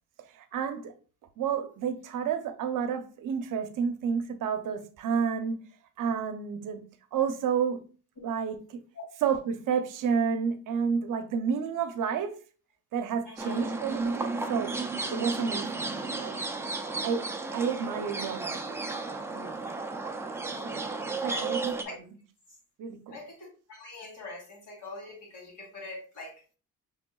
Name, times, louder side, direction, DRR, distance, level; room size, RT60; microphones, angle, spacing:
voice 1, 0.2-0.9 1.4-5.6 6.0-7.9 8.2-8.8 9.2-12.4 12.9-14.8 15.1-16.5 17.0-18.6 19.3-19.7 20.6-22.2 22.8-23.2, right 6 dB, 65° right, 0.7 m, -31 dB
voice 2, 13.3-13.6 19.6-19.7 21.3-21.6 23.1-26.3, left 3 dB, 60° left, 2.4 m, -43 dB
sound 1, 13.4-21.8, right 3 dB, 10° right, 0.4 m, -33 dB
6.0 x 3.4 x 2.2 m
cardioid pair, 135°, 35 cm